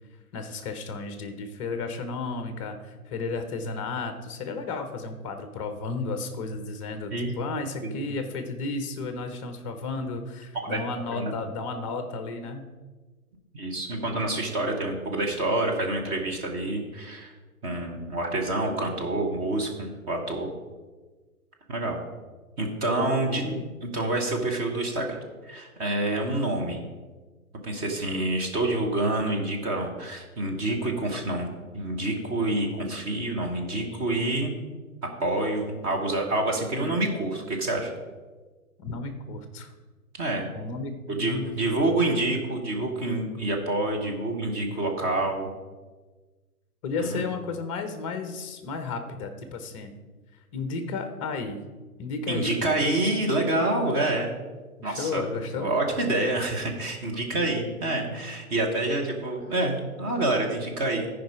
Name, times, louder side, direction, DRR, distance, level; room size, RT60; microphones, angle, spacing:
voice 1, 0.3-12.7 23.0-23.7 36.8-37.0 38.8-39.7 40.5-41.5 46.8-49.9 50.5-51.6 52.0-52.5 54.8-55.7, left 3 dB, 20° left, 8 dB, 0.7 m, -33 dB
voice 2, 13.5-17.3 17.6-20.5 21.7-22.0 22.6-23.5 23.8-25.2 25.4-26.8 27.6-31.5 31.7-34.5 35.0-37.9 40.2-40.5 41.1-45.5 47.0-47.2 52.3-54.3 54.8-55.2 55.5-61.1, right 2 dB, 20° right, 0 dB, 1.1 m, -27 dB
13.0 x 5.1 x 4.7 m, 1.3 s
figure-of-eight pair, 120°, 44 cm